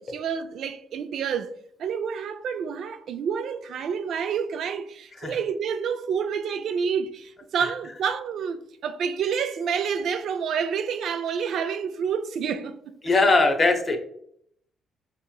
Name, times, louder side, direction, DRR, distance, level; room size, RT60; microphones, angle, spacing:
voice 1, 0.0-1.5 1.8-12.7, right 7 dB, 70° right, 0.3 m, -28 dB
voice 2, 13.0-14.0, left 3 dB, 40° left, 0.7 m, -20 dB
4.7 x 2.8 x 2.2 m
supercardioid pair, 65°, 0 cm